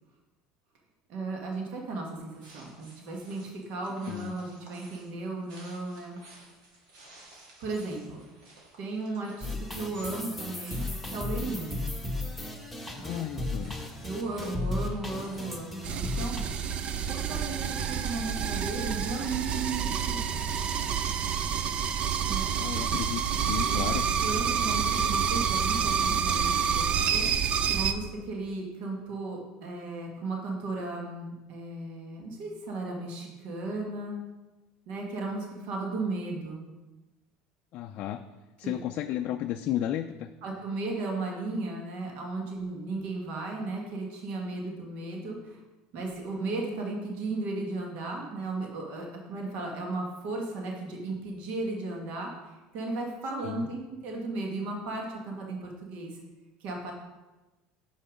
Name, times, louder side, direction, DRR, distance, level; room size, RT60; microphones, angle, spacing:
voice 1, 1.1-6.2 7.6-8.2 8.8-11.9 13.0-13.2 14.0-16.4 17.1-20.4 22.2-22.5 23.7-23.8 24.2-34.2 34.9-36.6 38.6-38.8 40.4-45.6 45.9-56.2 56.6-56.9, right 3 dB, 65° right, 0 dB, 1.6 m, -35 dB
sound 1, 2.2-21.8, right 2 dB, 90° right, 2.5 m, -55 dB
sound 2, 9.4-16.4, left 2 dB, ahead, 1.2 m, -35 dB
voice 2, 13.0-13.8 22.6-24.1 37.7-38.2 38.6-40.3 53.4-53.7, left 12 dB, 55° left, 6 dB, 0.4 m, -33 dB
sound 3, 15.8-27.9, right 7 dB, 40° right, 0.5 m, -28 dB
6.8 x 5.6 x 5.0 m, 1.1 s
supercardioid pair, 115°, 3 cm